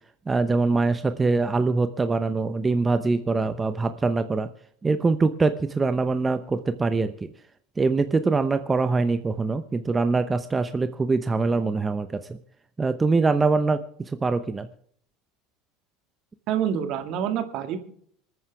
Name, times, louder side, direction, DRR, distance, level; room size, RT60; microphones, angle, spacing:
voice 1, 0.3-4.5 4.8-7.3 7.8-12.4 12.8-13.8 14.1-14.7, right 3 dB, 20° right, 10 dB, 0.9 m, -23 dB
voice 2, 16.5-17.8, right 9 dB, 55° right, 8 dB, 2.0 m, -27 dB
26.5 x 9.4 x 3.4 m, 0.62 s
hypercardioid pair, 80°, 0 cm